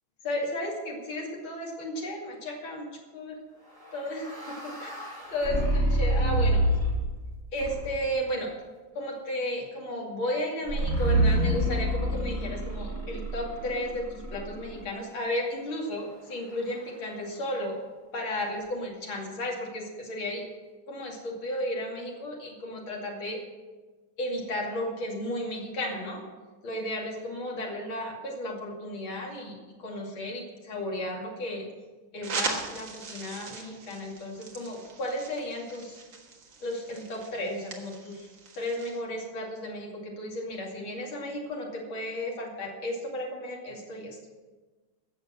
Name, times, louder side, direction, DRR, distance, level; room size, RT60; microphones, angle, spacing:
voice 1, 0.2-3.4 3.9-4.9 5.3-6.6 7.5-8.5 9.0-17.8 18.1-20.5 20.9-23.4 24.2-26.2 26.6-31.7 32.1-36.0 36.6-38.3 38.6-44.2, left 1 dB, 75° left, -2 dB, 3.4 m, -34 dB
sound 1, 3.8-7.1 7.6-8.1 10.7-14.8, right 1 dB, 30° right, 6.0 m, -27 dB
sound 2, 32.2-39.0, right 4 dB, 65° right, 2.3 m, -39 dB
16.0 x 6.8 x 7.5 m, 1.3 s
omnidirectional pair, 2.2 m